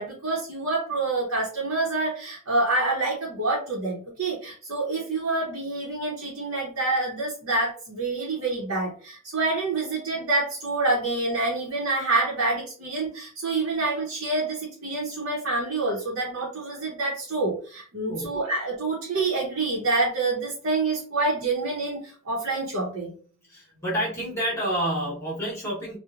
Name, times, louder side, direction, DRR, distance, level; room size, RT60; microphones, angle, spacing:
voice 1, 0.0-23.1, right 3 dB, 70° right, -4 dB, 0.8 m, -27 dB
voice 2, 23.5-26.0, right 1 dB, 15° left, -5 dB, 1.0 m, -29 dB
3.0 x 2.1 x 2.4 m, 0.42 s
head